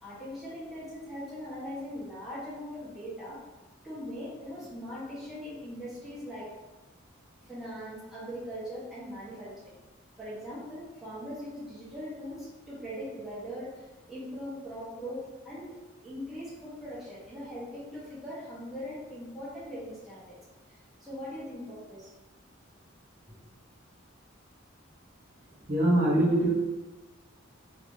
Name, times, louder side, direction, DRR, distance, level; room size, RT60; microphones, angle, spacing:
voice 1, 0.0-3.4 3.8-6.5 7.4-9.7 10.2-15.8 16.0-20.4 20.7-22.1, equal, ahead, -10 dB, 1.1 m, -40 dB
voice 2, 25.7-26.5, right 1 dB, 40° right, -7 dB, 1.2 m, -23 dB
3.2 x 2.8 x 3.2 m, 1.1 s
head